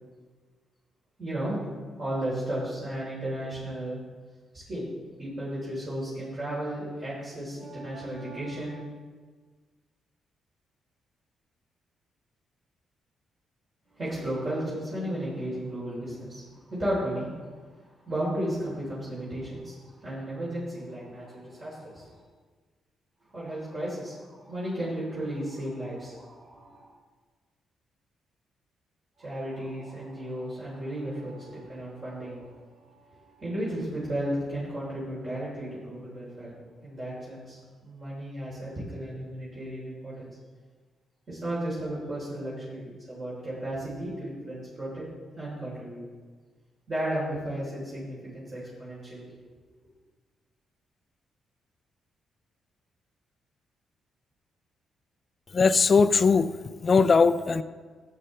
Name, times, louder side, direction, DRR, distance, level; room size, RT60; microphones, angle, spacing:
voice 1, 1.2-1.6 2.0-4.0 4.5-4.9 5.2-8.8 13.9-16.4 16.7-17.3 18.0-22.1 23.3-26.9 29.2-36.5 36.8-40.3 41.3-45.0 45.4-46.0 46.9-49.3, right 1 dB, 40° right, -9 dB, 3.5 m, -34 dB
voice 2, 55.5-56.5 56.8-57.6, left 5 dB, 35° left, 13 dB, 0.4 m, -20 dB
14.5 x 8.0 x 3.3 m, 1.5 s
cardioid pair, 125°, 0 cm